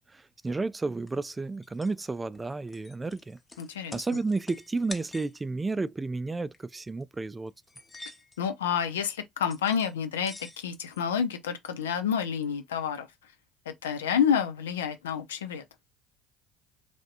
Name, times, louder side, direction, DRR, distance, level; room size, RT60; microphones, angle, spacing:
voice 1, 0.0-3.4 3.9-7.5, right 3 dB, 20° right, 0.3 m, -32 dB
sound 1, 1.1-1.2 1.6-1.9 2.3-5.4 6.4-6.6 7.0-7.1 7.6-8.4 9.5-9.9 10.2-11.0, left 2 dB, 20° left, 0.7 m, -47 dB
voice 2, 3.6-4.0 8.4-13.1 13.7-15.6, left 7 dB, 90° left, 0.6 m, -29 dB
3.3 x 2.6 x 2.5 m
hypercardioid pair, 70°, 0 cm